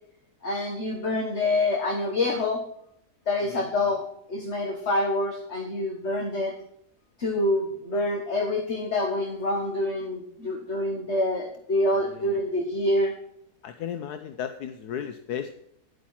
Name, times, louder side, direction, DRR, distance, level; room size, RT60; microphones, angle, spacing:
voice 1, 0.4-2.6 3.3-6.5 7.2-13.1, left 1 dB, 45° left, 3 dB, 1.6 m, -26 dB
voice 2, 11.9-12.5 13.6-15.5, left 8 dB, 80° left, 8 dB, 1.3 m, -35 dB
11.0 x 8.5 x 5.8 m, 0.72 s
omnidirectional pair, 1.7 m